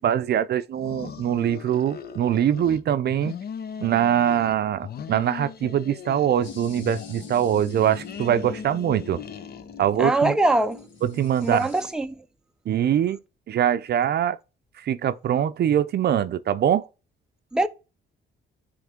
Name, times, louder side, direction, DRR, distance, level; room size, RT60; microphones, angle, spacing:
voice 1, 0.0-3.3 3.8-9.2 9.8-10.4 11.0-11.7 12.7-13.2 13.5-14.4 14.8-16.9, right 10 dB, 55° right, 0.5 m, -23 dB
sound 1, 0.7-2.8 3.1-4.6 4.8-6.6 6.8-10.0, left 8 dB, 50° left, 0.7 m, -39 dB
sound 2, 6.4-11.9, left 5 dB, 75° left, 1.8 m, -42 dB
voice 2, 10.0-10.8 11.4-12.1 17.5-17.7, right 2 dB, 5° right, 0.5 m, -22 dB
9.3 x 3.2 x 3.6 m
cardioid pair, 90°, 20 cm